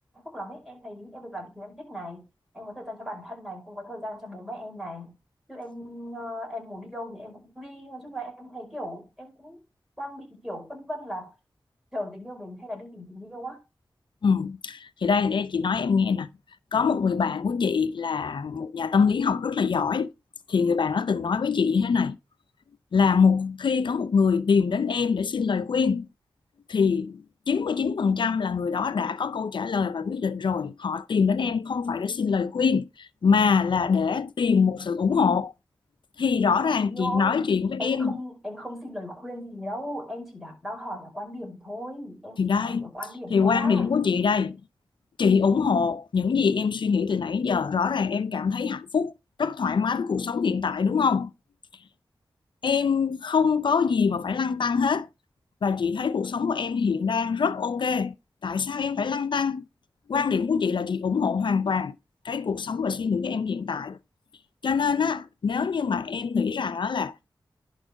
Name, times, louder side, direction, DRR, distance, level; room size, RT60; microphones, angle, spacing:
voice 1, 0.1-2.3 2.5-5.1 5.5-9.6 10.0-11.4 11.9-13.6 36.6-37.5 37.8-43.9, equal, 5° right, 5.1 m, -37 dB
voice 2, 14.2-16.3 16.7-20.1 20.5-22.2 22.9-26.1 26.7-35.5 36.2-38.2 42.4-42.9 43.3-44.6 45.2-49.1 49.4-51.3 52.6-55.1 55.6-58.1 58.4-59.7 60.1-61.9 62.2-64.0 64.6-67.4, left 5 dB, 75° left, 0.7 m, -24 dB
11.0 x 4.0 x 5.1 m
wide cardioid pair, 65°, 8 cm